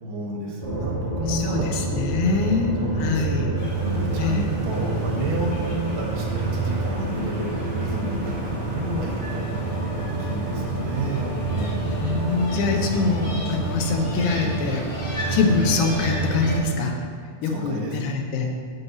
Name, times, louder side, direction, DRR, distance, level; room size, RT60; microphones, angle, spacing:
voice 1, 0.0-1.7 2.8-7.5 7.8-11.8 15.1-15.4 17.4-18.0, right 1 dB, 75° right, -2 dB, 3.2 m, -32 dB
sound 1, 0.6-16.6, right 3 dB, 25° right, 1.1 m, -28 dB
voice 2, 1.3-3.5 4.2-4.5 11.8-14.9 15.3-16.9 17.4-18.5, left 4 dB, 80° left, 3 dB, 2.9 m, -24 dB
sound 2, 3.5-16.6, equal, 50° left, 0.9 m, -39 dB
7.9 x 7.6 x 4.0 m, 2.2 s
omnidirectional pair, 4.7 m